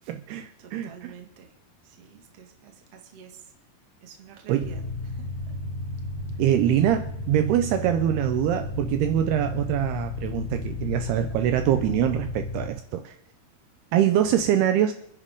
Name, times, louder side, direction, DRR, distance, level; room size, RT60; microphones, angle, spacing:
voice 1, 0.1-0.9 4.5-4.7 6.4-13.1 13.9-14.9, right 11 dB, 80° right, 8 dB, 2.5 m, -24 dB
voice 2, 0.6-1.5 1.8-3.5 4.0-5.6 6.3-6.4 8.7-8.8, right 7 dB, 50° right, 3 dB, 2.1 m, -49 dB
sound 1, 4.6-12.7, left 3 dB, 80° left, 0.6 m, -33 dB
27.5 x 10.0 x 3.7 m, 0.74 s
omnidirectional pair, 5.0 m